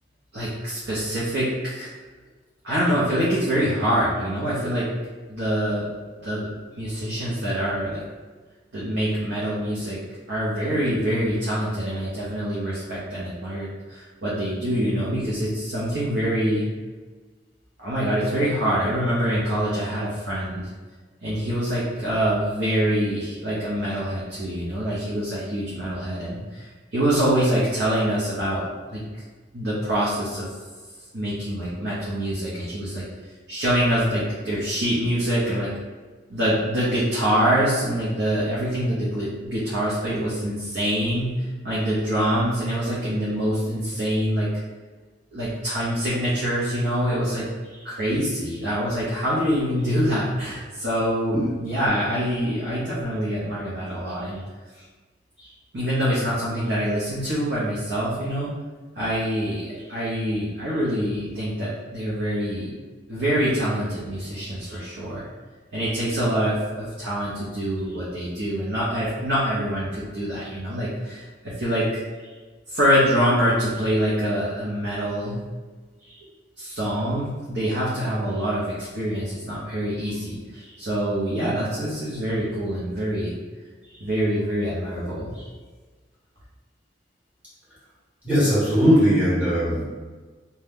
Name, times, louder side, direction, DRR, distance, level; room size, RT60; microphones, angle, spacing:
voice 1, 0.3-1.9 2.6-4.9 5.3-5.9 6.2-6.5 6.8-8.0 8.7-10.0 10.3-16.7 17.8-20.7 21.2-28.7 28.9-29.0 29.5-30.5 31.1-33.0 33.5-35.7 36.3-41.3 41.6-44.5 45.3-54.4 54.8-54.9 55.4-58.5 59.0-62.7 63.1-65.2 65.7-72.3 72.7-75.4 76.0-76.3 76.6-83.3 84.0-85.5, equal, 65° right, -9 dB, 0.7 m, -25 dB
voice 2, 88.2-89.8, equal, 10° right, -11 dB, 1.4 m, -19 dB
2.7 x 2.2 x 3.5 m, 1.4 s
head